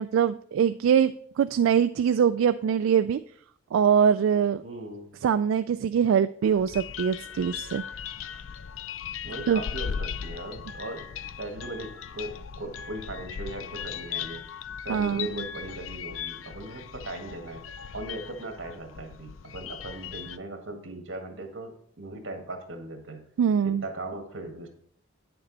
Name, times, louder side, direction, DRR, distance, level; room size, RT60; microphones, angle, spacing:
voice 1, 0.0-3.2 3.7-4.6 5.2-7.8 9.5-9.6 14.9-15.3 23.4-23.8, right 7 dB, 85° right, 11 dB, 0.3 m, -23 dB
voice 2, 4.6-5.1 9.2-11.0 11.4-14.4 14.8-17.6 17.9-23.2 23.6-24.7, right 2 dB, 65° right, 4 dB, 1.8 m, -38 dB
sound 1, 6.4-20.4, left 8 dB, 85° left, 0.4 m, -38 dB
9.2 x 6.9 x 4.0 m, 0.63 s
head